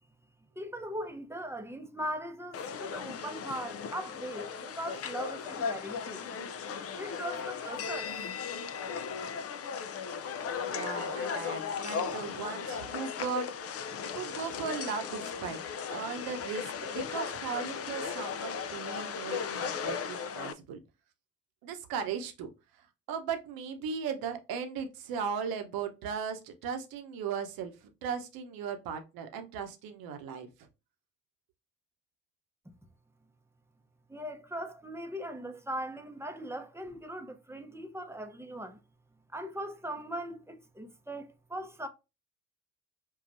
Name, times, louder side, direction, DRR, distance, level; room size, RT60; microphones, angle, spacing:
voice 1, 0.6-6.2 7.0-8.1 34.1-38.8 39.3-41.9, right 1 dB, 5° right, 0.7 m, -39 dB
sound 1, 2.5-20.5, left 6 dB, 40° left, 0.5 m, -37 dB
voice 2, 10.7-13.5 14.1-15.6 15.9-20.8 21.6-22.5 23.1-27.7 28.0-30.5, right 6 dB, 70° right, 0.9 m, -37 dB
5.4 x 2.3 x 2.6 m
hypercardioid pair, 50°, 37 cm